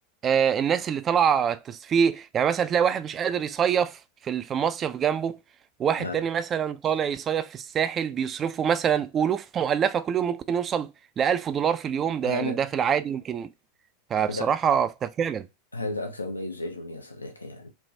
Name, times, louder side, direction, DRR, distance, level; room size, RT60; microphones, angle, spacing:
voice 1, 0.2-4.0 4.2-5.4 5.8-10.9 11.2-13.5 14.1-15.5, right 8 dB, 30° right, 0.3 m, -25 dB
voice 2, 12.2-12.7 14.3-14.6 15.7-17.7, left 2 dB, 85° left, 0.8 m, -33 dB
3.3 x 2.0 x 2.6 m
figure-of-eight pair, 85°, 0 cm